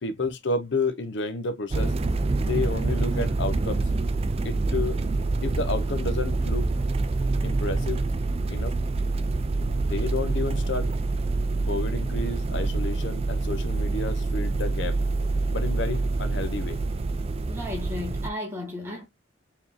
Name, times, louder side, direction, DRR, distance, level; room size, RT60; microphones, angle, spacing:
voice 1, 0.0-1.9 2.3-3.9 4.4-5.0 5.4-6.7 7.4-8.0 8.5-8.8 9.6-10.9 11.6-15.0 15.5-16.8, left 3 dB, 65° left, 0.7 m, -31 dB
sound 1, 1.7-18.3, right 3 dB, 30° right, 0.4 m, -26 dB
voice 2, 17.5-19.1, left 2 dB, 10° right, 1.7 m, -34 dB
4.6 x 3.6 x 2.7 m
head